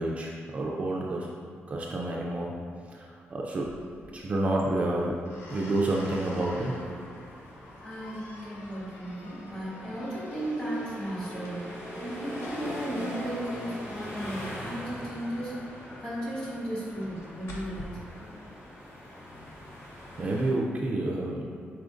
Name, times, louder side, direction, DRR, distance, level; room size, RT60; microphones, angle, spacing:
voice 1, 0.0-1.3 1.7-2.6 2.9-3.8 4.1-5.2 5.5-6.8 20.2-21.5, right 2 dB, 30° right, -2 dB, 0.3 m, -29 dB
sound 1, 3.6-17.8, left 1 dB, 70° left, 0.7 m, -49 dB
sound 2, 5.6-20.5, equal, 90° left, 1.2 m, -42 dB
voice 2, 7.8-15.6 16.0-18.3, right 1 dB, 25° left, -8 dB, 1.4 m, -35 dB
4.9 x 4.2 x 2.5 m, 2.3 s
wide cardioid pair, 180°, 4 cm